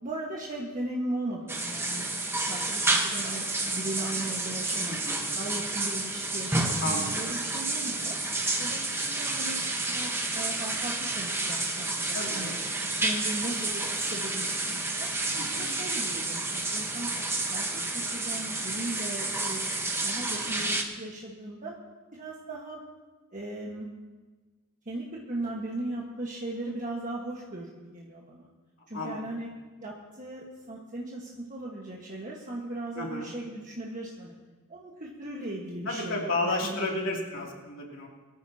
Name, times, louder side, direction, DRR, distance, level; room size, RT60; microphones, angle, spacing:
voice 1, 0.0-2.1 2.5-5.0 5.3-8.2 8.6-9.6 9.9-15.1 15.5-17.1 17.5-19.7 20.0-21.7 22.1-22.8 23.3-23.9 24.8-28.5 28.9-29.5 29.8-34.3 34.7-37.4, right 1 dB, 35° right, -3 dB, 1.5 m, -38 dB
sound 1, 1.5-20.8, right 2 dB, 10° right, 1.2 m, -30 dB
voice 2, 4.8-5.3 6.8-7.2 12.1-12.5 15.3-15.8 28.9-29.2 32.9-33.3 35.9-38.1, left 2 dB, 65° left, -2 dB, 2.9 m, -32 dB
23.5 x 14.0 x 2.9 m, 1.3 s
head